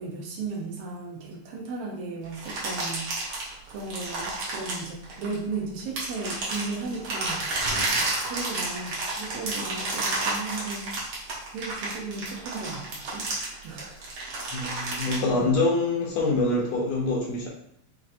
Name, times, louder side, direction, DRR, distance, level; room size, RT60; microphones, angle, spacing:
voice 1, 0.0-3.1 3.7-13.3 13.6-14.0 15.3-15.6, right 3 dB, 85° right, -1 dB, 1.3 m, -36 dB
sound 1, 2.3-5.5 6.0-15.2, right 2 dB, 60° right, 1.7 m, -31 dB
voice 2, 14.5-17.5, left 2 dB, 75° left, -2 dB, 1.5 m, -25 dB
5.8 x 2.6 x 2.6 m, 0.74 s
omnidirectional pair, 3.6 m